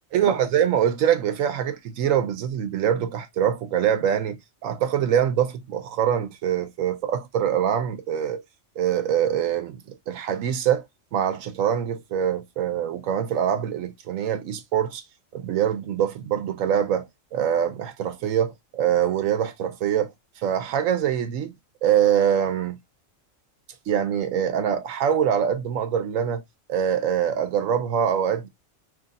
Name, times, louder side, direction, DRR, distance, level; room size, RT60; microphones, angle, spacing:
voice 1, 0.1-8.4 8.8-10.8 11.1-15.0 15.3-20.1 20.4-21.5 21.8-22.8 23.9-26.4 26.7-28.5, right 9 dB, 85° right, 1.0 m, -24 dB
3.1 x 2.5 x 3.9 m
omnidirectional pair, 1.3 m